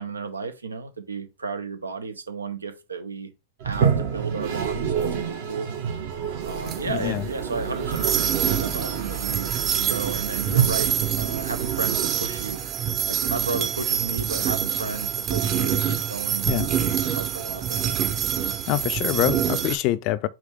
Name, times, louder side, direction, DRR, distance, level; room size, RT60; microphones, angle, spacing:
voice 1, 0.0-3.3 3.6-5.7 6.5-12.6 13.1-16.5 17.0-17.8, right 4 dB, 85° right, 0.9 m, -33 dB
Toilet flush, 3.6-12.7, right 7 dB, 55° right, 1.2 m, -28 dB
sound 1, 6.4-19.8, right 8 dB, 40° right, 0.9 m, -26 dB
voice 2, 6.9-7.2 16.4-16.7 18.7-20.3, left 15 dB, 45° left, 0.4 m, -25 dB
5.0 x 2.9 x 3.6 m
hypercardioid pair, 100°, 0 cm